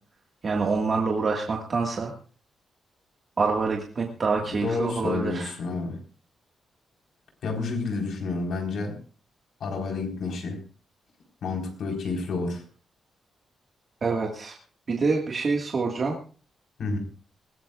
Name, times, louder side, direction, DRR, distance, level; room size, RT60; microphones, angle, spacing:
voice 1, 0.4-2.1 3.4-5.5 14.0-14.5 14.9-16.2, right 4 dB, 35° right, 0 dB, 1.7 m, -26 dB
voice 2, 4.6-6.0 7.4-9.0 9.6-10.6 11.4-12.6 16.8-17.0, left 3 dB, 65° left, 2 dB, 4.3 m, -29 dB
20.5 x 17.5 x 2.4 m, 0.39 s
wide cardioid pair, 170°, 0 cm